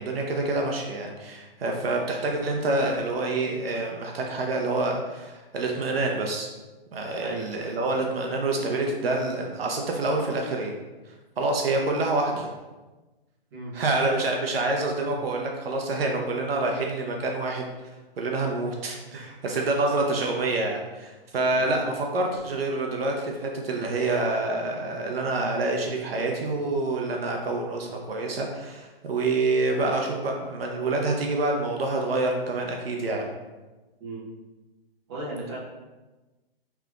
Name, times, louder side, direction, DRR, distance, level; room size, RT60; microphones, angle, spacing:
voice 1, 0.0-6.5 6.9-10.7 11.4-12.5 13.7-17.9 18.2-33.3, right 2 dB, 70° right, 1 dB, 0.8 m, -27 dB
voice 2, 35.1-35.6, right 2 dB, 25° right, -7 dB, 1.1 m, -36 dB
5.7 x 3.4 x 2.4 m, 1.2 s
hypercardioid pair, 170°, 30 cm